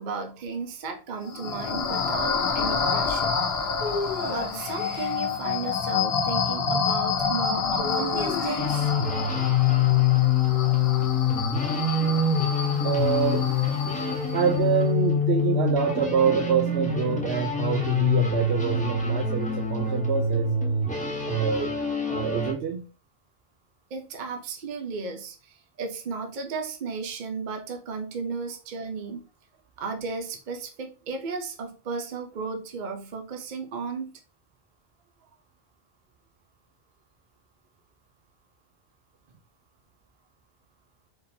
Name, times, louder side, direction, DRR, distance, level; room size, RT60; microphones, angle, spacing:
voice 1, 0.0-3.4 4.2-8.9 23.9-29.3 29.8-34.1, right 4 dB, 55° right, 4 dB, 0.8 m, -34 dB
sound 1, 1.2-14.6, left 5 dB, 85° left, 1.0 m, -28 dB
sound 2, 3.8-5.2 7.8-8.9, left 3 dB, 55° left, 0.8 m, -33 dB
sound 3, 8.6-22.5, left 5 dB, 10° left, 1.0 m, -25 dB
voice 2, 12.8-13.4 14.3-20.6 21.3-21.7 22.1-22.9, right 8 dB, 90° right, 3 dB, 0.9 m, -26 dB
4.1 x 3.7 x 2.7 m, 0.35 s
omnidirectional pair, 1.0 m